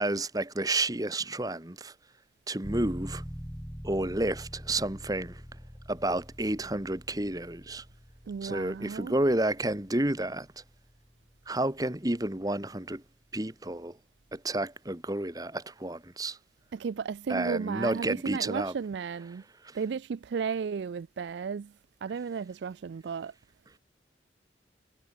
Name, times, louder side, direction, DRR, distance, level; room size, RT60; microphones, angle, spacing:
voice 1, 0.0-1.9 2.5-3.2 3.8-5.4 5.9-7.8 8.4-10.5 11.5-13.0 13.3-13.9 14.3-16.4 17.3-18.8, right 1 dB, 20° right, 1.5 m, -30 dB
sound 1, 2.6-13.2, equal, 5° left, 3.6 m, -45 dB
voice 2, 8.3-9.1 16.7-19.4 19.8-21.7 22.0-23.3, right 6 dB, 70° right, 0.4 m, -34 dB
head